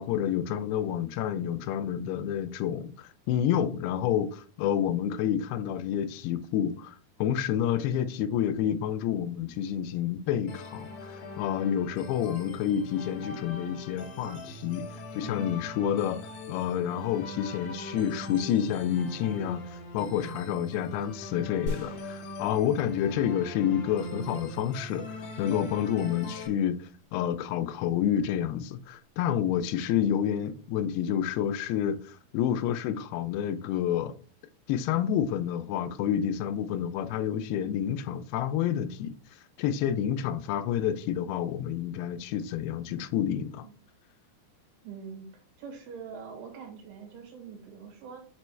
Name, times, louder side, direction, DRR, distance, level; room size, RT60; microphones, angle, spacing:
voice 1, 0.0-14.9 15.2-16.2 16.5-34.1 34.7-39.1 39.6-43.7, left 9 dB, 90° left, 2.6 m, -29 dB
sound 1, 10.5-26.5, left 2 dB, 75° left, 1.8 m, -41 dB
sound 2, 21.7-23.6 23.9-24.0, left 2 dB, 50° left, 3.2 m, -40 dB
voice 2, 44.8-48.2, right 6 dB, 90° right, 3.5 m, -44 dB
7.1 x 3.0 x 4.4 m
omnidirectional pair, 4.5 m